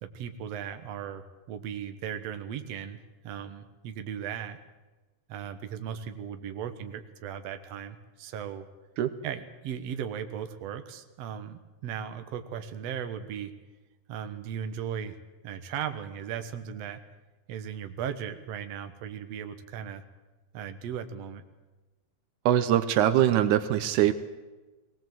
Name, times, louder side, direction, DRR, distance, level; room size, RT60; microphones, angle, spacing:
voice 1, 0.0-4.6 5.3-8.7 9.2-13.5 14.1-15.2 15.4-17.0 17.5-20.0 20.5-21.4, right 8 dB, 65° right, 8 dB, 2.2 m, -37 dB
voice 2, 22.5-24.1, right 11 dB, 80° right, 11 dB, 2.3 m, -22 dB
20.0 x 18.5 x 7.7 m, 1.2 s
omnidirectional pair, 3.5 m